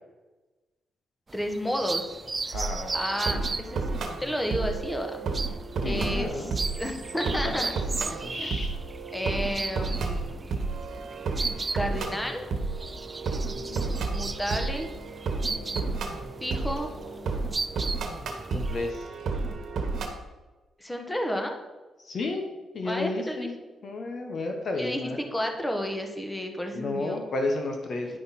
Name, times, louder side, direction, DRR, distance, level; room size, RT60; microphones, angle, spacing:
voice 1, 1.3-2.2 2.5-2.7 2.9-5.2 5.8-7.7 8.1-8.5 9.1-12.5 14.1-14.9 16.4-16.9 20.8-21.5 22.8-23.5 24.8-27.2, equal, 10° left, 4 dB, 1.3 m, -32 dB
sound 1, 1.3-18.9, right 3 dB, 30° right, 0.3 m, -37 dB
voice 2, 2.5-2.9 5.8-6.5 7.2-7.7 8.2-8.7 13.5-13.9 15.5-16.0 18.5-19.0 22.0-22.5 22.7-23.6 23.8-25.2 26.8-28.1, left 2 dB, 55° left, 3 dB, 1.2 m, -32 dB
sound 2, 2.5-20.1, right 3 dB, 65° right, 1.3 m, -32 dB
10.0 x 5.5 x 4.2 m, 1.2 s
cardioid pair, 80°, 0 cm